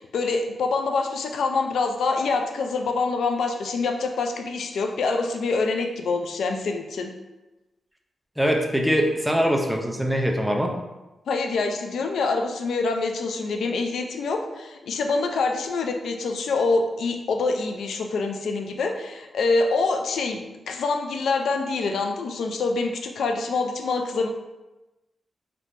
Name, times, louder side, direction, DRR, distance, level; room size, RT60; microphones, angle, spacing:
voice 1, 0.0-7.1 11.3-20.4 20.7-24.3, left 3 dB, 80° left, 4 dB, 0.3 m, -25 dB
voice 2, 8.4-10.7, equal, ahead, 1 dB, 0.4 m, -22 dB
3.5 x 2.8 x 2.5 m, 1.1 s
wide cardioid pair, 140°, 0 cm